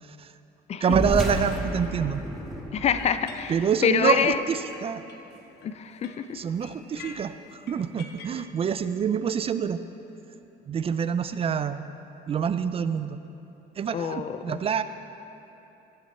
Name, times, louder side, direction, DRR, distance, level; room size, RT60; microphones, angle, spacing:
voice 1, 0.0-0.3 0.8-2.2 3.5-5.0 6.3-9.8 10.7-11.9 12.3-13.2 13.8-14.8, right 7 dB, 35° right, 12 dB, 0.3 m, -26 dB
sound 1, 0.8-5.7, left 1 dB, ahead, 1.3 m, -34 dB
Drum, 0.9-3.4, right 2 dB, 65° right, 2.2 m, -39 dB
voice 2, 2.7-3.5 3.8-4.4 5.6-6.4 13.9-14.6, left 8 dB, 40° left, 12 dB, 0.4 m, -26 dB
sound 2, 3.0-8.4, left 6 dB, 75° left, 0.7 m, -48 dB
14.5 x 6.3 x 4.3 m, 2.9 s
cardioid pair, 110°, 17 cm